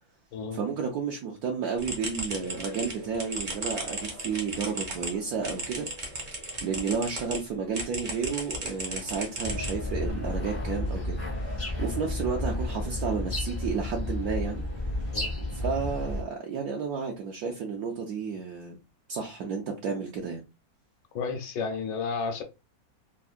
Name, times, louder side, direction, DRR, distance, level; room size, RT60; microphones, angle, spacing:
voice 1, 0.5-5.9 6.6-14.6 15.5-18.8 19.1-20.4, right 5 dB, 70° right, 0.9 m, -32 dB
sound 1, 1.8-7.4 7.7-10.1, right 2 dB, 45° right, 0.6 m, -36 dB
sound 2, 9.4-16.2, left 1 dB, 15° left, 0.4 m, -32 dB
voice 2, 21.1-22.4, left 5 dB, 75° left, 1.2 m, -32 dB
3.5 x 2.1 x 2.4 m
omnidirectional pair, 2.1 m